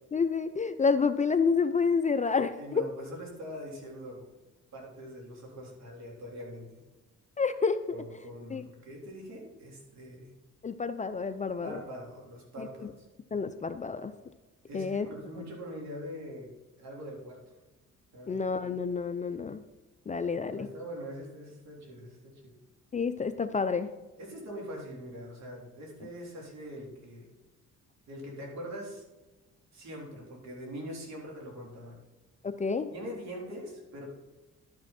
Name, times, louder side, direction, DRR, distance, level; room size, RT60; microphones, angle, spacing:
voice 1, 0.1-2.8 7.4-7.8 8.5-8.6 10.6-11.8 12.6-12.9 13.3-14.1 14.7-15.1 18.3-19.6 20.1-20.7 22.9-23.9 32.4-32.9, left 5 dB, 25° left, 10 dB, 0.5 m, -29 dB
voice 2, 2.6-4.3 4.7-6.8 7.9-10.3 11.6-13.1 14.7-17.4 18.1-18.4 20.5-22.6 24.2-27.3 28.1-29.0 29.7-32.0 32.9-34.0, equal, 60° right, -2 dB, 3.6 m, -43 dB
11.5 x 6.2 x 4.3 m, 1.1 s
cardioid pair, 90°, 30 cm